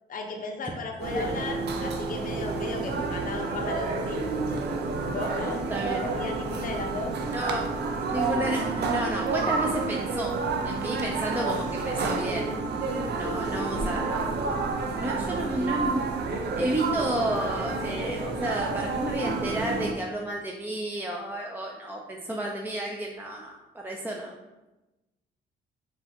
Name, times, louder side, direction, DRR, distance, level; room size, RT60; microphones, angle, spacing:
voice 1, 0.1-4.3 5.1-7.1, left 3 dB, 45° left, 2 dB, 0.7 m, -35 dB
sound 1, 1.0-19.9, right 3 dB, 55° right, 0.6 m, -29 dB
voice 2, 5.7-6.3 7.3-7.7 8.1-12.5 13.1-14.2 15.0-16.1 16.6-24.3, right 1 dB, 10° right, -1 dB, 0.5 m, -32 dB
5.0 x 2.8 x 3.5 m, 1.1 s
cardioid pair, 90°, 20 cm